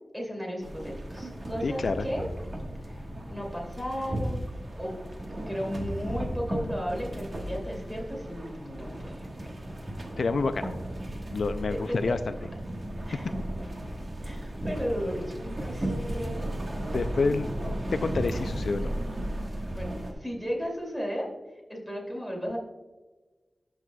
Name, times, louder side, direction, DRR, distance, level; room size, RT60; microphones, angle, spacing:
voice 1, 0.1-2.2 2.8-3.0 3.3-4.5 4.8-5.0 5.5-9.5 11.7-12.0 13.1-13.3 14.2-16.0 19.7-21.3 21.7-22.6, equal, 5° right, -2 dB, 2.5 m, -34 dB
sound 1, 0.6-20.1, right 1 dB, 45° right, 1.3 m, -35 dB
voice 2, 1.6-2.1 10.2-10.7 11.3-12.3 16.7-17.5 17.9-18.9, left 4 dB, 75° left, 10 dB, 0.3 m, -28 dB
12.5 x 6.2 x 2.2 m, 1.2 s
wide cardioid pair, 105°, 0 cm